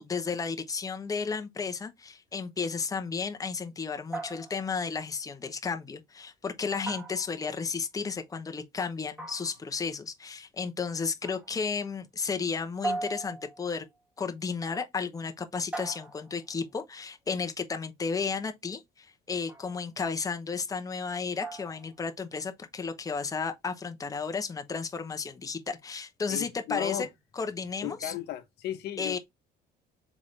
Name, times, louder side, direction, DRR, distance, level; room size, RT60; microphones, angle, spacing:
voice 1, 0.0-13.8 14.2-27.1 27.4-28.1 29.0-29.2, left 5 dB, 20° left, 0.7 m, -33 dB
sound 1, 4.1-4.9 6.9-7.7 9.2-9.8 11.2-11.6 12.8-13.8 15.7-16.5 19.5-19.8 21.4-21.9, right 2 dB, 10° right, 1.3 m, -38 dB
voice 2, 26.3-27.1 27.8-29.2, left 12 dB, 75° left, 0.8 m, -35 dB
4.0 x 3.6 x 3.1 m
cardioid pair, 110°, 17 cm